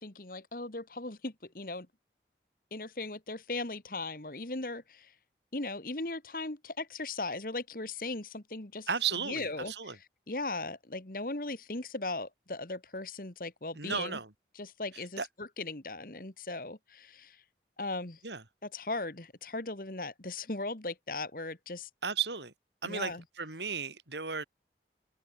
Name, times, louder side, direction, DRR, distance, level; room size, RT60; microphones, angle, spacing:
voice 1, 0.0-1.9 2.7-5.1 5.5-14.2 14.5-17.4 17.8-18.2 18.6-21.9 22.8-23.2, left 2 dB, 50° left, 1.8 m, -38 dB
voice 2, 8.9-9.9 13.8-14.3 15.2-15.3 18.2-18.4 22.0-22.5 22.8-24.5, right 6 dB, 80° right, 4.5 m, -34 dB
head